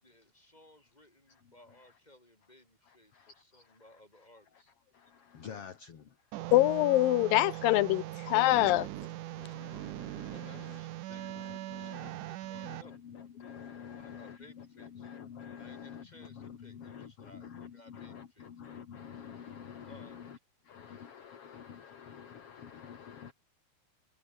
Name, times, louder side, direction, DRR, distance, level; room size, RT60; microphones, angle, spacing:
voice 1, 0.0-4.7 5.4-5.6 10.3-11.3 11.6-13.0 13.9-15.1 15.6-18.5 19.8-20.2, left 1 dB, 10° left, 7.2 m, -59 dB
voice 2, 1.3-1.8 2.8-4.3 4.5-4.6 4.9-6.2 8.5-8.7 9.3-10.8 11.1-20.4 20.6-23.3, left 8 dB, 45° left, 2.4 m, -49 dB
sound 1, 6.3-12.8, right 15 dB, 80° right, 1.8 m, -40 dB
voice 3, 6.5-8.9, left 18 dB, 90° left, 2.0 m, -24 dB
omnidirectional pair, 4.8 m